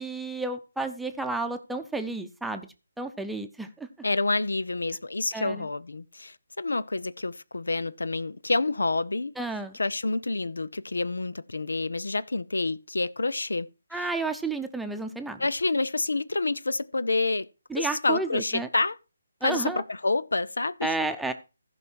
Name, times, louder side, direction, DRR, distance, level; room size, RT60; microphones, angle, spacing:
voice 1, 0.0-2.7 3.0-3.9 5.3-5.7 9.4-9.8 13.9-15.5 17.7-18.7 19.4-19.8 20.8-21.3, right 3 dB, ahead, 0.8 m, -31 dB
voice 2, 4.0-9.3 9.7-13.7 13.9-14.1 15.4-17.5 17.8-19.0 19.4-20.9, left 3 dB, 85° left, 0.6 m, -28 dB
15.0 x 5.5 x 4.6 m
figure-of-eight pair, 155°, 0 cm